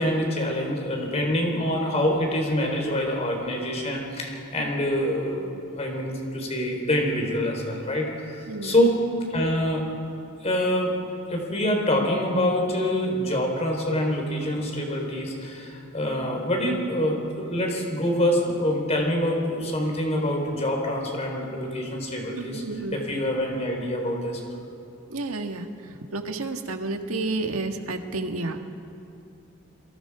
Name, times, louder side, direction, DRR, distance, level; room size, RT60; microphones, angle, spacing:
voice 1, 0.0-5.5 5.8-9.0 9.3-9.8 10.4-10.9 11.3-22.6 22.9-24.4, left 1 dB, 30° left, 1 dB, 4.1 m, -25 dB
voice 2, 22.3-23.0 25.1-25.7 26.1-28.6, right 2 dB, 90° right, 5 dB, 1.7 m, -30 dB
28.0 x 23.0 x 4.9 m, 2.6 s
head